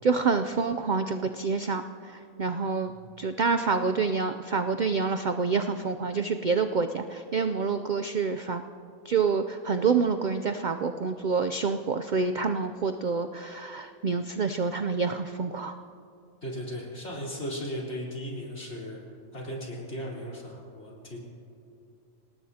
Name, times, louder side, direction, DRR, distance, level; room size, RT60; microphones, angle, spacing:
voice 1, 0.0-2.9 3.2-8.6 9.0-15.7, right 5 dB, 90° right, 8 dB, 0.4 m, -27 dB
voice 2, 16.4-19.0 19.3-21.2, equal, 50° left, -4 dB, 4.0 m, -36 dB
26.5 x 18.5 x 2.8 m, 2.6 s
omnidirectional pair, 1.5 m